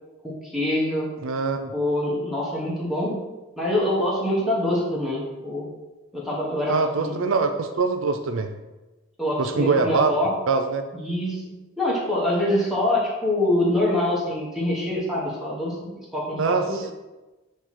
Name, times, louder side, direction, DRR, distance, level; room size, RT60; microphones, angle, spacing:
voice 1, 0.2-1.1 1.7-3.2 3.6-5.7 6.1-7.2 9.2-10.3 10.9-11.4 11.8-16.7, left 1 dB, ahead, -6 dB, 1.2 m, -25 dB
voice 2, 1.2-1.7 6.7-8.5 9.4-10.1 10.5-10.8 16.4-16.9, right 4 dB, 75° right, 6 dB, 0.5 m, -23 dB
7.9 x 3.1 x 4.2 m, 1.1 s
head